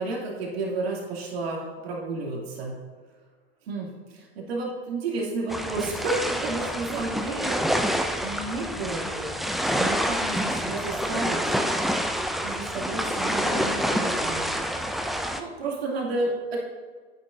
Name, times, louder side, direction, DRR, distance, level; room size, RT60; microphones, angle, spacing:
voice 1, 0.0-2.8 3.7-7.8 8.2-11.6 12.4-14.5 15.4-16.6, right 3 dB, 75° right, -3 dB, 2.6 m, -31 dB
sound 1, 5.5-15.4, equal, ahead, 0.3 m, -27 dB
10.0 x 8.7 x 2.6 m, 1.5 s
hypercardioid pair, 105°, 31 cm